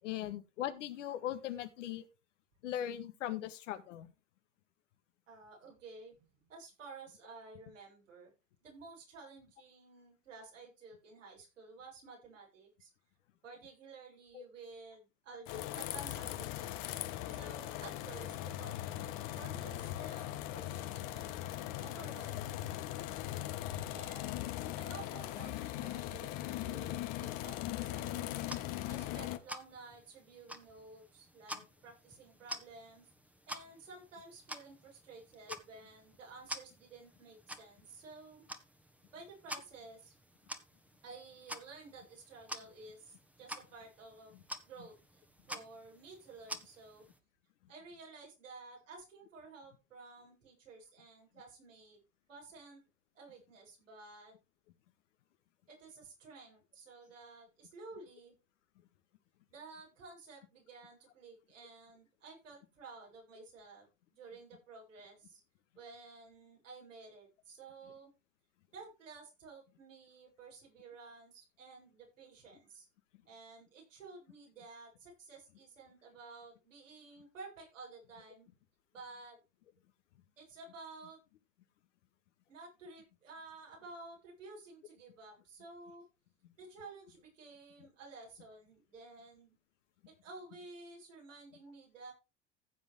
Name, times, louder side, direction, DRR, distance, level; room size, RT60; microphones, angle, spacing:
voice 1, 0.0-2.0 2.6-4.1 14.3-14.4, left 11 dB, 75° left, 9 dB, 1.7 m, -39 dB
voice 2, 5.3-8.3 8.6-12.9 13.4-16.7 17.3-21.4 21.8-22.7 23.9-24.5 24.8-28.3 28.9-33.1 33.5-38.4 39.1-40.1 41.0-44.3 44.6-44.9 45.4-47.0 47.7-52.0 52.3-52.8 53.1-54.4 55.7-58.3 59.5-65.4 65.7-68.1 68.7-72.9 73.3-78.5 78.9-79.4 80.4-81.2 82.5-86.0 86.6-89.6 90.1-92.1, right 3 dB, 85° right, -2 dB, 7.5 m, -53 dB
sound 1, 15.4-29.4, left 14 dB, 60° left, 1.4 m, -40 dB
sound 2, 28.4-47.2, right 1 dB, 5° right, 1.5 m, -49 dB
15.5 x 7.4 x 3.5 m, 0.28 s
hypercardioid pair, 80°, 37 cm